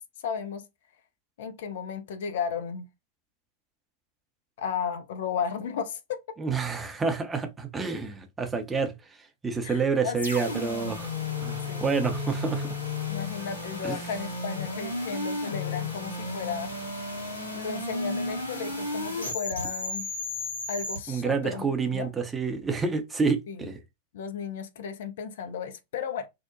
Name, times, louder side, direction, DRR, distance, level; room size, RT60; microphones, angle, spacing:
voice 1, 0.2-0.7 1.4-2.8 4.6-6.2 9.6-10.2 11.7-11.8 13.1-16.7 17.5-20.1 20.7-22.1 23.5-23.7 24.1-26.3, left 7 dB, 55° left, 0.4 m, -34 dB
voice 2, 6.4-8.9 9.4-11.1 11.4-12.8 13.8-14.0 21.1-23.8, right 5 dB, 15° right, 0.6 m, -28 dB
sound 1, 10.2-21.0, left 2 dB, 75° left, 1.2 m, -33 dB
2.7 x 2.0 x 2.5 m
figure-of-eight pair, 90°, 0 cm